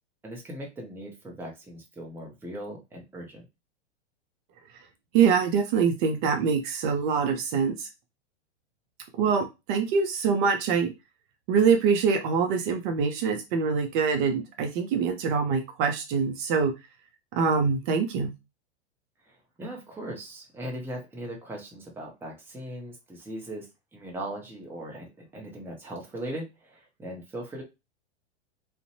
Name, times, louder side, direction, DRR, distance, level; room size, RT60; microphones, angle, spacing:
voice 1, 0.2-3.5 19.3-23.7 23.9-25.1 25.3-27.6, right 1 dB, 5° right, 0 dB, 0.6 m, -39 dB
voice 2, 5.1-7.9 9.2-10.9 11.5-16.7 17.3-18.3, right 6 dB, 50° right, 5 dB, 0.6 m, -24 dB
2.5 x 2.1 x 2.6 m, 0.25 s
hypercardioid pair, 105°, 34 cm